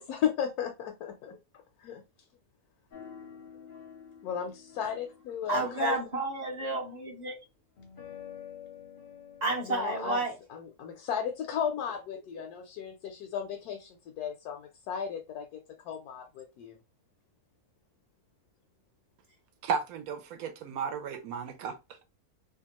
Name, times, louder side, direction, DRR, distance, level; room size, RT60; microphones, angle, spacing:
voice 1, 0.0-1.3 1.8-2.0 4.2-6.0 9.6-10.2 10.5-15.5 15.8-16.8, left 8 dB, 80° left, 1.1 m, -35 dB
sound 1, 2.9-6.1 7.8-10.0, left 8 dB, 50° left, 0.6 m, -49 dB
voice 2, 5.5-7.4 9.4-10.4, right 2 dB, 40° right, 0.7 m, -31 dB
voice 3, 19.6-21.8, right 6 dB, 75° right, 1.0 m, -34 dB
2.8 x 2.3 x 2.9 m
omnidirectional pair, 1.6 m